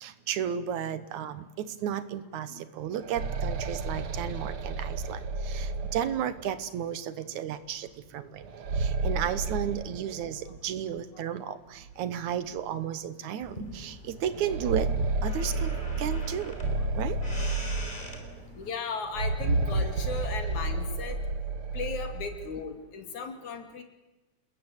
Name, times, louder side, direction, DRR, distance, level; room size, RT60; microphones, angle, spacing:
voice 1, 0.0-7.9 8.1-8.4 8.8-14.9 15.2-16.5 17.0-17.2, right 9 dB, 75° right, 14 dB, 2.5 m, -33 dB
sound 1, 2.8-6.6 8.4-10.6 10.9-11.0 11.9-12.0 12.5-12.6 14.2-18.4 19.0-22.4, right 3 dB, 50° right, 2.1 m, -31 dB
sound 2, 13.4-18.7, equal, 15° left, 3.8 m, -43 dB
voice 2, 18.6-21.2 21.7-23.8, left 5 dB, 70° left, 6 dB, 3.9 m, -36 dB
28.5 x 21.0 x 8.2 m, 1.1 s
omnidirectional pair, 3.5 m